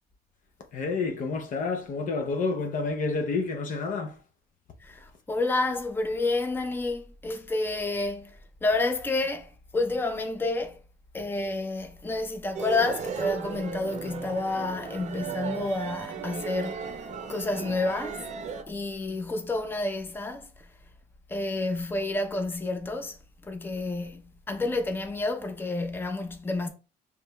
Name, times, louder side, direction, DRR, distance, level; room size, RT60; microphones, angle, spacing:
voice 1, 0.7-4.2, left 4 dB, 50° left, 0.6 m, -29 dB
voice 2, 4.8-10.8 11.1-16.9 17.3-18.3 18.7-20.7 21.3-23.2 23.4-26.7, left 2 dB, 10° left, 0.6 m, -29 dB
sound 1, 12.5-18.6, right 6 dB, 45° right, 0.6 m, -35 dB
4.9 x 3.2 x 2.2 m
cardioid pair, 110°, 17 cm